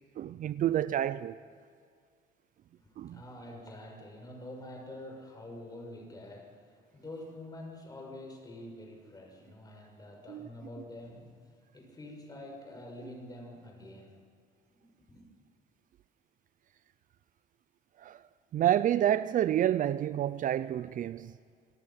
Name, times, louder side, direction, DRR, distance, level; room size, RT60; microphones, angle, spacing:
voice 1, 0.2-1.4 3.0-3.2 10.3-10.5 18.0-18.2 18.5-21.3, right 11 dB, 50° right, 0.5 m, -29 dB
voice 2, 2.8-14.2 14.7-15.3, left 1 dB, 20° left, 6.4 m, -47 dB
27.0 x 19.0 x 5.8 m
cardioid pair, 110°, 17 cm